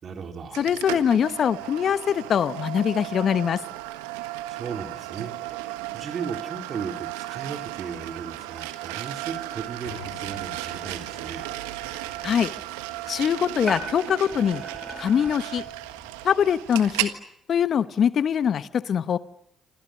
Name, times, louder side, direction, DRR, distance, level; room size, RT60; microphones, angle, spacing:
voice 1, 0.0-0.6 4.5-11.5, right 6 dB, 55° right, 5 dB, 4.1 m, -36 dB
sound 1, 0.5-17.2, right 16 dB, 85° right, 1.5 m, -35 dB
voice 2, 0.6-3.6 12.2-12.5 13.1-14.6 15.0-15.6 16.2-17.1 17.5-19.2, left 8 dB, 55° left, 14 dB, 1.0 m, -23 dB
sound 2, 9.8-13.5, left 10 dB, 90° left, 2.6 m, -48 dB
sound 3, 11.8-17.0, right 1 dB, 10° right, 7.7 m, -41 dB
27.0 x 27.0 x 6.7 m, 0.77 s
hypercardioid pair, 50°, 0 cm